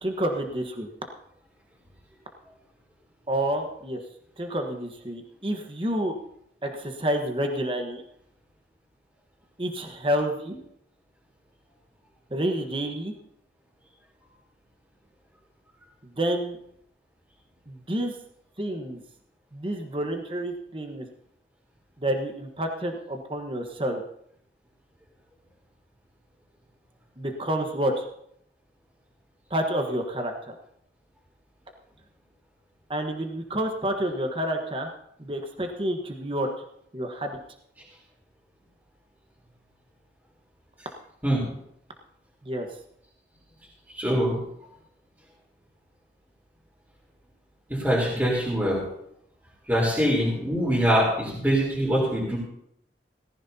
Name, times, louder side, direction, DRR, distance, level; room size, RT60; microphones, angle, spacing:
voice 1, 0.0-0.9 3.3-4.0 4.4-6.2 6.6-8.0 9.6-10.6 12.3-13.1 16.2-16.6 17.7-18.1 18.6-19.0 19.5-21.1 22.0-24.0 27.2-28.1 29.5-30.6 32.9-34.9 35.2-36.5 36.9-37.4 42.4-42.7, right 1 dB, 30° right, 3 dB, 1.3 m, -29 dB
voice 2, 43.9-44.4 47.7-48.8 49.7-52.4, equal, 10° right, -5 dB, 3.8 m, -23 dB
18.5 x 14.5 x 2.9 m, 0.72 s
head